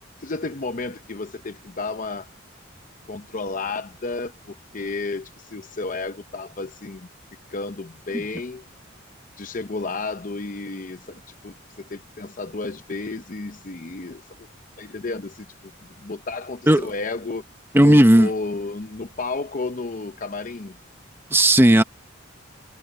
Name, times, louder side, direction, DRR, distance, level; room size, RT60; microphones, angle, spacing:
voice 1, 0.2-2.3 3.1-7.1 7.5-8.6 9.4-14.5 14.8-15.5 15.8-17.4 17.8-20.8, left 3 dB, 40° left, 0.7 m, -32 dB
voice 2, 17.7-18.3 21.3-21.8, right 1 dB, 10° right, 0.8 m, -13 dB
head